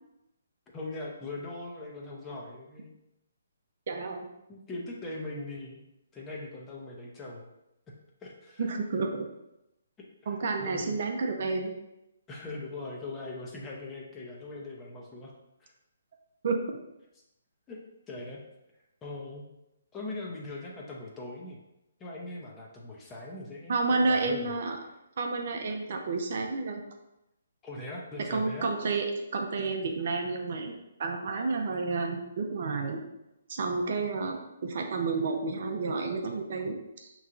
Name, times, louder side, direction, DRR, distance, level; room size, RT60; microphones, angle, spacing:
voice 1, 0.7-2.9 4.5-5.8 6.1-7.5 8.2-8.7 10.2-11.0 12.3-15.3 15.6-15.7 17.7-17.8 18.1-18.4 19.0-19.4 19.9-21.6 22.0-24.5 27.6-28.7, left 2 dB, 15° left, -2 dB, 0.7 m, -40 dB
voice 2, 3.9-4.2 8.6-9.3 10.3-11.7 16.4-16.8 23.7-24.8 25.2-26.8 28.3-29.1 29.3-33.0 33.5-37.1, right 3 dB, 55° right, 3 dB, 0.6 m, -30 dB
5.4 x 3.1 x 2.5 m, 0.89 s
hypercardioid pair, 145°, 0 cm